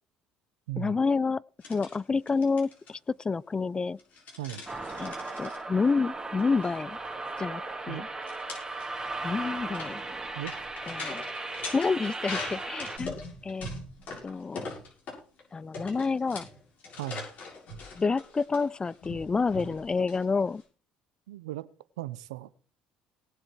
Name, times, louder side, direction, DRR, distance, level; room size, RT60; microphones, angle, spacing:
voice 1, 0.8-1.4 1.7-4.0 5.0-7.0 7.4-8.1 9.2-10.0 10.9-11.2 11.7-13.2 13.4-13.7 14.2-14.7 15.5-16.5 18.0-20.6, left 4 dB, 25° left, 0.5 m, -29 dB
sound 1, 1.6-2.0 2.3-2.9 4.0-5.6 6.4-6.7 6.9-7.1 7.4-7.5 8.2-15.4 15.7-20.6, left 3 dB, 55° left, 7.2 m, -41 dB
sound 2, 4.7-13.0, right 3 dB, 20° right, 2.5 m, -37 dB
voice 2, 10.4-11.0 17.0-17.3 21.3-21.7 22.0-22.5, right 15 dB, 85° right, 0.7 m, -37 dB
18.5 x 7.5 x 4.7 m
hypercardioid pair, 60°, 3 cm